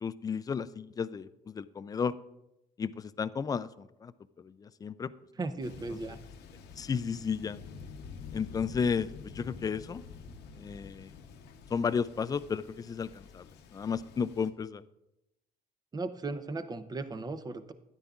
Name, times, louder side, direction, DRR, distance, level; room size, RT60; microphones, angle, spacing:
voice 1, 0.0-2.1 2.8-4.1 4.4-5.1 6.8-7.6 8.3-9.1 9.3-10.0 10.5-11.1 11.7-13.4 13.7-14.8, left 6 dB, 20° left, 16 dB, 0.3 m, -33 dB
voice 2, 5.4-6.2 15.9-17.7, right 3 dB, 25° right, 12 dB, 0.6 m, -36 dB
Thunder, 5.6-14.5, left 5 dB, 85° left, 0.8 m, -48 dB
12.5 x 10.0 x 2.4 m, 0.91 s
cardioid pair, 110°, 17 cm